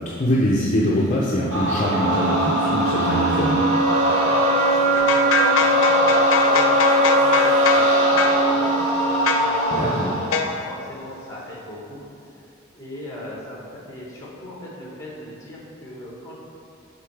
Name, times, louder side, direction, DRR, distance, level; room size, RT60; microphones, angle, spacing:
voice 1, 0.1-3.6 9.7-10.2, left 1 dB, 40° left, -5 dB, 0.6 m, -23 dB
sound 1, 1.5-10.4, right 1 dB, 70° right, 1.0 m, -23 dB
sound 2, 1.9-9.9, right 1 dB, 35° right, 0.5 m, -22 dB
voice 2, 4.2-9.8 10.3-16.3, left 1 dB, 15° left, -5 dB, 1.4 m, -39 dB
sound 3, 4.9-7.9 8.2-8.4 9.2-9.5 10.3-10.7, left 5 dB, 85° left, 0.5 m, -23 dB
7.2 x 3.8 x 4.7 m, 2.5 s
head